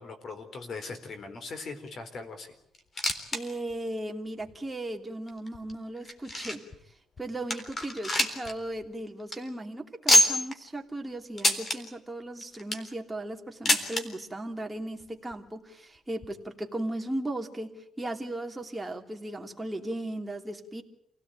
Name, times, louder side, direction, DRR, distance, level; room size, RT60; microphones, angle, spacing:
voice 1, 0.0-2.6, left 4 dB, 50° left, 8 dB, 4.1 m, -40 dB
sound 1, 2.7-3.4 3.7-3.8 4.5-4.6 5.3-6.8 7.2-7.3 7.5-8.5 8.8-8.9 9.2-9.4 10.1-10.6 11.4-11.8 12.4-12.9 13.7-14.0 15.0-15.1 15.3-15.4 16.2-16.3, left 1 dB, 30° left, 3.8 m, -25 dB
voice 2, 3.3-6.6 7.2-20.8, right 1 dB, 10° right, 3 dB, 3.0 m, -36 dB
28.0 x 17.5 x 9.1 m, 0.76 s
cardioid pair, 110°, 0 cm